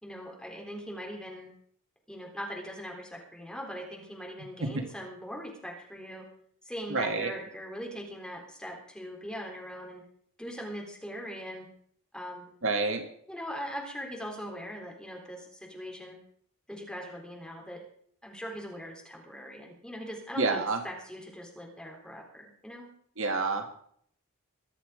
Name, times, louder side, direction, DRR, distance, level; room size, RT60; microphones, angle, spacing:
voice 1, 0.0-1.5 2.1-6.3 6.6-10.0 10.4-11.7 12.1-12.5 13.3-16.2 16.7-17.8 18.2-22.9, equal, 5° left, 0 dB, 3.8 m, -41 dB
voice 2, 6.9-7.3 12.6-13.0 20.3-20.8 23.2-23.7, right 3 dB, 65° right, 5 dB, 1.8 m, -28 dB
23.0 x 8.3 x 5.0 m, 0.63 s
head